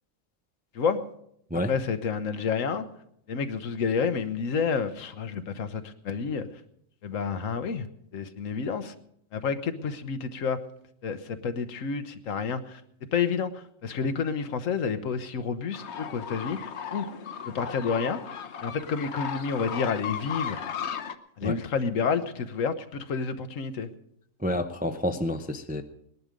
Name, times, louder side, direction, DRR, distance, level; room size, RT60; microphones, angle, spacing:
voice 1, 1.7-2.9 3.3-6.5 7.0-7.9 8.1-8.9 9.3-10.6 11.0-12.8 13.1-17.1 17.4-18.2 18.6-20.6 21.4-23.9, left 5 dB, 75° left, 10 dB, 1.3 m, -29 dB
sound 1, 15.7-21.2, left 8 dB, 60° left, 1.0 m, -36 dB
voice 2, 24.4-25.8, left 1 dB, 10° right, 7 dB, 0.4 m, -29 dB
19.0 x 11.0 x 5.1 m, 0.71 s
omnidirectional pair, 1.4 m